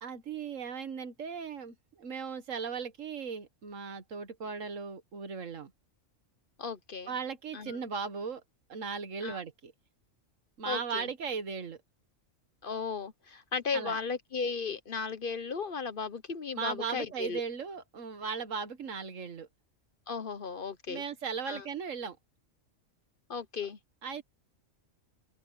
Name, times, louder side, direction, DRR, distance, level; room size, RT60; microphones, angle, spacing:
voice 1, 0.0-5.7 7.1-8.4 8.7-9.7 10.6-11.8 13.7-14.0 16.6-19.5 20.9-22.2 24.0-24.2, right 6 dB, 80° right, 1.8 m, -37 dB
voice 2, 6.6-7.1 7.5-7.8 9.2-9.4 10.7-11.1 12.6-17.4 20.1-21.0 21.5-21.6 23.3-23.8, left 5 dB, 50° left, 0.9 m, -35 dB
open air
omnidirectional pair, 1.3 m